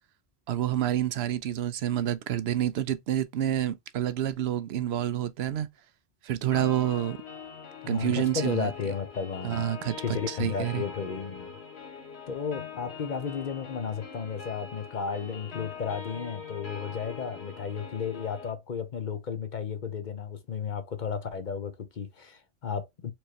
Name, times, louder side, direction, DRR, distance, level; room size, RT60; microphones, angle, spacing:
voice 1, 0.5-5.7 6.2-7.2 7.9-8.7 9.4-10.0 10.3-10.8, right 11 dB, 75° right, 0.8 m, -28 dB
sound 1, 6.5-18.5, left 6 dB, 75° left, 1.5 m, -42 dB
voice 2, 7.8-9.7 10.0-11.5 12.3-23.1, left 6 dB, 50° left, 0.8 m, -33 dB
4.5 x 3.2 x 2.9 m
omnidirectional pair, 1.1 m